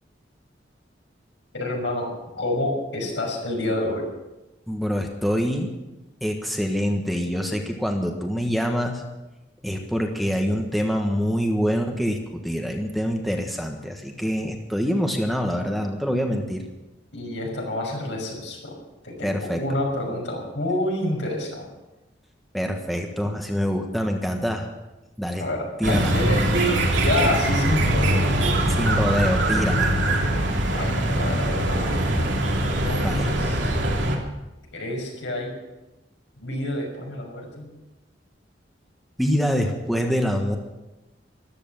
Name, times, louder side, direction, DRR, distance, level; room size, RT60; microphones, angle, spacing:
voice 1, 1.5-4.1 17.1-18.7 19.0-21.7 25.4-28.3 30.7-32.3 32.8-33.8 34.7-35.5 36.4-37.7, left 1 dB, 75° left, 0 dB, 6.2 m, -28 dB
voice 2, 4.7-5.7 6.2-9.0 9.6-16.6 19.2-19.6 22.5-24.7 25.2-25.5 25.8-26.2 28.7-29.9 33.0-33.5 39.2-40.6, equal, ahead, 2 dB, 1.4 m, -25 dB
sound 1, 25.8-34.1, right 1 dB, 85° right, 3.2 m, -22 dB
14.0 x 13.0 x 7.3 m, 1.0 s
head